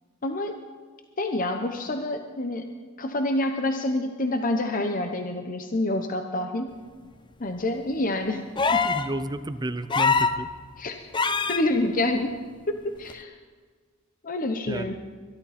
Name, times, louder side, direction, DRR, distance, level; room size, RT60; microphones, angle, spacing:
voice 1, 0.2-0.5 1.2-2.7 3.0-6.7 7.4-8.4 10.8-11.0 11.5-12.4 12.7-13.4 14.2-14.9, left 1 dB, 45° left, 5 dB, 0.9 m, -27 dB
sound 1, 8.6-9.1 9.9-10.4 11.1-11.6 13.1-13.2, left 4 dB, 25° left, 0.5 m, -23 dB
voice 2, 8.7-10.5 14.7-14.9, right 1 dB, 20° right, 12 dB, 0.6 m, -31 dB
22.5 x 12.0 x 4.2 m, 1.5 s
head